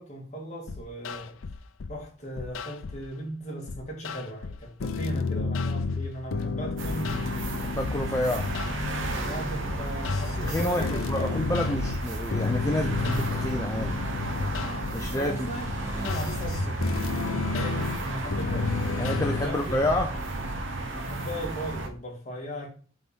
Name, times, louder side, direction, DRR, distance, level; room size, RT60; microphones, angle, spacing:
voice 1, 0.0-1.4 1.9-7.6 8.3-8.7 9.3-11.4 15.1-19.1 19.4-19.9 21.0-22.7, equal, 35° left, 2.3 m, -38 dB
sound 1, 0.7-2.0 2.4-3.1 3.7-19.5, left 4 dB, 85° left, 0.5 m, -32 dB
sound 2, 6.8-21.9, right 2 dB, 75° right, 1.1 m, -33 dB
voice 2, 7.6-8.5 10.4-14.0 14.9-15.5 19.0-20.1, left 1 dB, 15° left, 0.6 m, -29 dB
sound 3, 8.3-20.6, equal, 15° right, 2.4 m, -49 dB
7.8 x 4.3 x 3.6 m
head